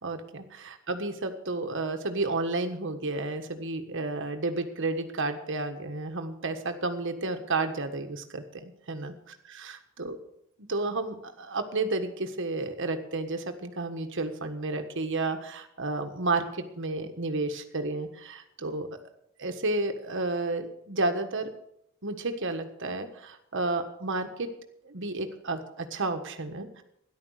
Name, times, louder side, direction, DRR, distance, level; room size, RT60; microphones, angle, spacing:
voice 1, 0.0-9.1 9.5-10.2 10.7-18.9 19.4-21.5 22.0-24.5 24.8-26.8, right 2 dB, 60° right, 7 dB, 1.5 m, -31 dB
13.5 x 11.0 x 6.5 m, 0.77 s
head